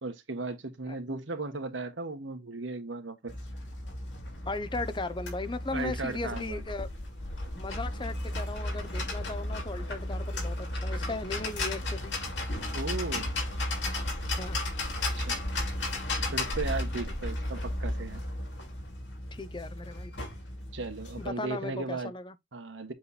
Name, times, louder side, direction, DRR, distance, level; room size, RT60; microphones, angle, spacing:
voice 1, 0.0-3.3 5.7-6.6 12.7-13.3 15.2-15.4 16.3-18.2 20.7-22.1 22.5-22.9, right 3 dB, 80° right, 1.2 m, -36 dB
sound 1, 3.3-21.3, left 1 dB, 70° left, 2.8 m, -34 dB
voice 2, 4.5-6.9 7.5-12.1 14.3-14.6 19.3-20.1 21.2-22.3, left 3 dB, 25° left, 0.7 m, -37 dB
7.7 x 3.1 x 4.1 m
head